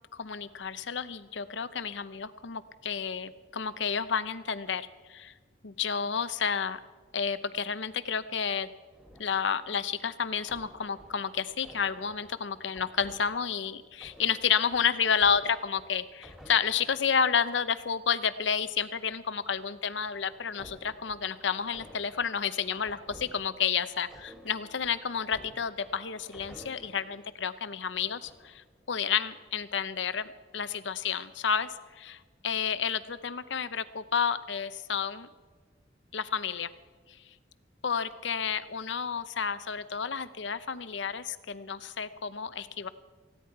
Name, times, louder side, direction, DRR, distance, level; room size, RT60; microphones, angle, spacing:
voice 1, 0.1-5.3 5.6-6.8 7.1-8.7 9.2-35.3 36.1-36.7 37.8-42.9, left 7 dB, 80° left, 14 dB, 0.7 m, -31 dB
sound 1, 8.9-9.9 10.4-17.7 19.6-27.2 27.8-28.6, equal, ahead, 2.2 m, -53 dB
19.0 x 15.5 x 4.7 m, 1.4 s
head